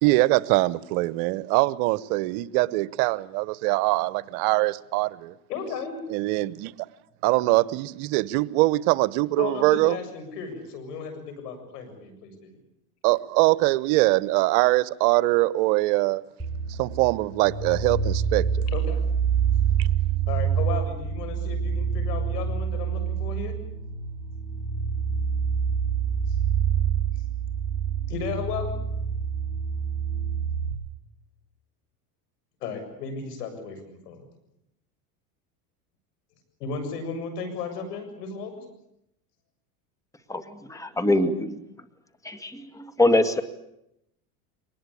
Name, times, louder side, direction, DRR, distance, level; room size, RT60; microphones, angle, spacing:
voice 1, 0.0-5.3 6.1-6.7 7.2-10.0 13.0-16.2 16.7-18.6 19.8-19.9, right 20 dB, 70° right, 1.0 m, -23 dB
voice 2, 5.5-6.0 9.4-12.6 18.7-19.0 20.3-23.6 26.3-26.4 27.1-27.2 28.1-28.8 32.6-34.2 36.6-38.6, left 5 dB, 90° left, 7.4 m, -34 dB
sound 1, 16.4-30.7, right 7 dB, 10° right, 3.5 m, -27 dB
voice 3, 40.3-41.6 42.2-43.4, left 1 dB, 5° left, 2.0 m, -24 dB
24.0 x 20.0 x 8.6 m
supercardioid pair, 105°, 46 cm